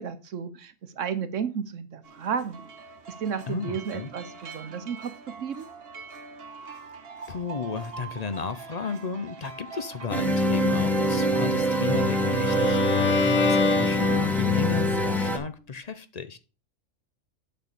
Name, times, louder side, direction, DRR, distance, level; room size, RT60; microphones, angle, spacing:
voice 1, 0.0-2.6 3.2-5.1 5.4-5.7, right 7 dB, 70° right, 1.2 m, -32 dB
sound 1, 2.0-10.1, right 4 dB, 50° right, 1.3 m, -43 dB
voice 2, 3.5-4.1 6.7-6.9 7.3-16.4, left 5 dB, 45° left, 0.5 m, -34 dB
sound 2, 10.1-15.4, equal, ahead, 1.1 m, -24 dB
Bowed string instrument, 11.5-14.6, left 5 dB, 85° left, 1.4 m, -27 dB
9.1 x 4.1 x 6.6 m
omnidirectional pair, 1.4 m